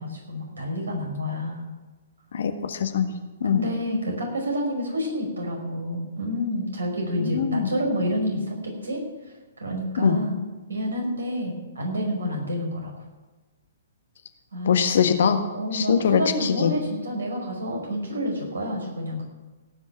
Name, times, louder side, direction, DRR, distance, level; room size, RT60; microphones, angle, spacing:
voice 1, 0.0-1.6 3.4-9.0 9.6-10.4 10.7-12.9 14.5-14.8 15.5-19.2, equal, 75° right, 0 dB, 5.5 m, -29 dB
voice 2, 2.3-3.1 3.4-3.6 7.2-7.7 10.0-10.2 14.6-15.4 15.7-16.7, left 7 dB, 60° left, 7 dB, 1.5 m, -22 dB
17.5 x 6.3 x 9.0 m, 1.2 s
figure-of-eight pair, 120°, 0 cm